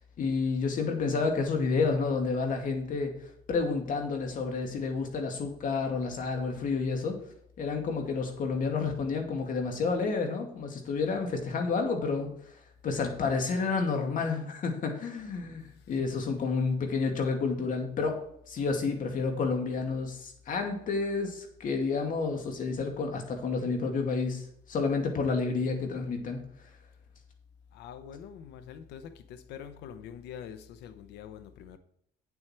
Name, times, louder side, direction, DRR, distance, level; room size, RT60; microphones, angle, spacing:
voice 1, 0.2-3.1 3.5-7.2 7.6-12.5 12.8-18.2 18.5-26.4, left 4 dB, 50° left, 2.4 m, -30 dB
voice 2, 27.8-29.0 29.5-31.8, left 8 dB, 85° left, 0.9 m, -44 dB
8.8 x 8.0 x 4.5 m
cardioid pair, 110°, 17 cm